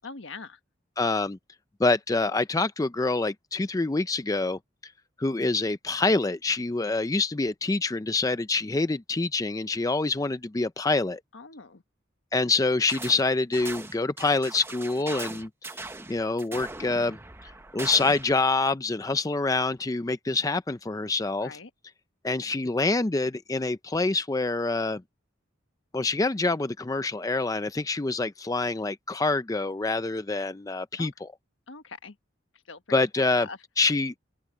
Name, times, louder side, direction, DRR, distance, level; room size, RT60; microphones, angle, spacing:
voice 1, 0.0-0.6 11.3-11.8 21.4-21.7 31.0-31.1 31.7-32.1 32.7-33.0 33.4-33.6, left 4 dB, 75° left, 1.3 m, -42 dB
voice 2, 1.0-1.4 1.8-4.9 5.2-11.2 12.3-21.6 22.2-25.0 25.9-31.3 32.9-33.5 33.8-34.1, left 3 dB, 15° left, 0.4 m, -26 dB
sound 1, 12.9-13.2 13.5-18.3, right 2 dB, 10° right, 0.8 m, -40 dB
open air
head